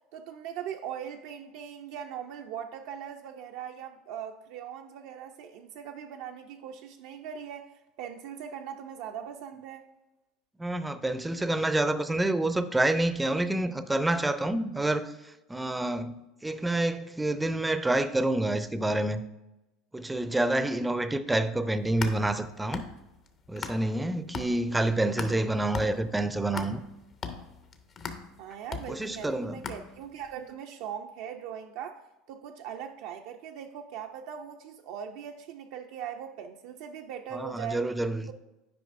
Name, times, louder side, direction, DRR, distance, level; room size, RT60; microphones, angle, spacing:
voice 1, 0.1-7.7 8.0-9.9 28.4-32.0 32.3-37.8, right 8 dB, 70° right, 0.4 m, -40 dB
voice 2, 10.6-16.2 16.4-19.2 19.9-22.9 23.5-26.8 28.9-29.7 37.3-38.3, right 2 dB, 10° right, 0.4 m, -28 dB
sound 1, 21.7-24.0 24.3-30.3, left 5 dB, 40° left, 0.7 m, -40 dB
9.3 x 4.9 x 2.5 m
hypercardioid pair, 90°, 0 cm